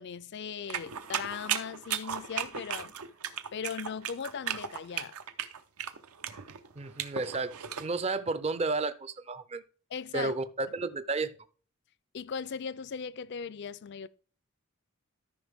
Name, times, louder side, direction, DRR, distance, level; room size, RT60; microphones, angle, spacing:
voice 1, 0.0-2.9 3.5-5.2 9.9-10.3 12.1-14.1, left 6 dB, 50° left, 0.4 m, -38 dB
sound 1, 0.7-7.9, right 9 dB, 85° right, 0.8 m, -36 dB
voice 2, 6.8-9.6 10.1-11.3, right 3 dB, 30° right, 0.4 m, -32 dB
13.5 x 5.6 x 3.5 m
head